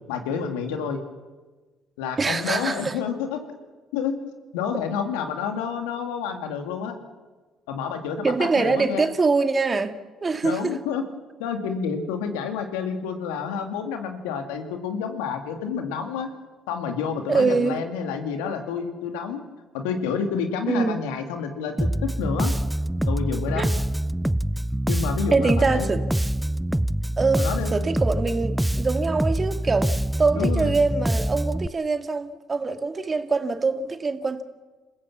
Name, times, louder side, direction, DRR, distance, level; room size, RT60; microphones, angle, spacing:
voice 1, 0.1-1.0 2.0-3.4 3.9-4.2 4.5-6.9 7.7-9.1 10.4-11.0 11.4-16.3 16.7-19.4 19.7-22.5 23.1-23.7 24.9-25.9 27.4-27.8 30.3-30.7, left 6 dB, 80° left, 2.2 m, -29 dB
voice 2, 2.2-3.0 8.2-9.9 10.2-10.8 17.3-17.8 20.7-21.0 23.6-23.7 25.3-26.0 27.2-29.9 30.2-34.4, right 4 dB, 35° right, 2.0 m, -24 dB
Bass guitar, 21.8-31.7, right 1 dB, 5° right, 0.6 m, -25 dB
27.5 x 15.5 x 7.2 m
hypercardioid pair, 55°, 0 cm